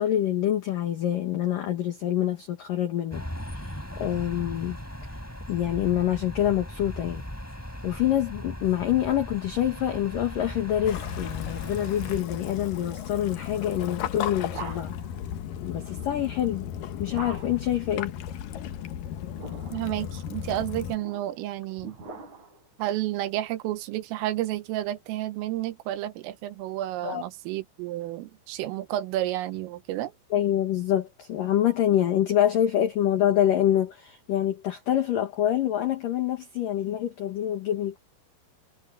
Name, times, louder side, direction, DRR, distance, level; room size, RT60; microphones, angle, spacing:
voice 1, 0.0-3.2 3.6-3.7 4.0-4.8 5.5-7.2 7.8-14.9 15.6-16.7 17.0-18.1 27.0-27.2 30.3-38.0, left 11 dB, 60° left, 2.7 m, -26 dB
sound 1, 3.1-12.2, equal, 5° left, 4.6 m, -38 dB
Waves surf / Splash splatter / Trickle dribble, 10.9-21.0, left 9 dB, 75° left, 2.0 m, -35 dB
sound 2, 14.0-15.2 17.1-17.8 19.1-19.9 20.7-22.7, right 4 dB, 35° right, 7.8 m, -43 dB
voice 2, 19.7-22.0 22.8-30.1, right 14 dB, 90° right, 3.8 m, -31 dB
omnidirectional pair, 5.7 m